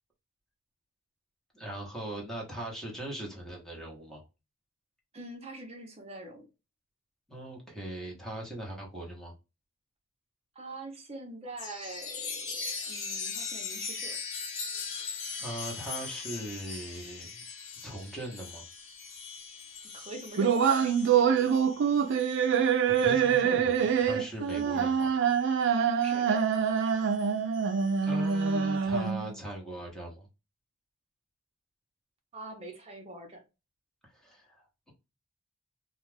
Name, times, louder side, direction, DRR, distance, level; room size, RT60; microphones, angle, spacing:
voice 1, 1.5-4.2 7.3-9.3 14.9-17.4 17.8-18.6 22.9-25.1 28.0-30.3 34.1-34.9, right 1 dB, ahead, 0.9 m, -40 dB
voice 2, 5.1-6.4 10.6-14.2 19.9-21.6 24.5-24.7 26.0-26.5 32.3-33.4, right 2 dB, 30° right, 0.7 m, -44 dB
Chime, 11.6-25.6 26.0-28.8, left 5 dB, 60° left, 0.7 m, -41 dB
sound 1, 20.4-29.4, right 7 dB, 55° right, 0.4 m, -25 dB
2.4 x 2.4 x 3.2 m
head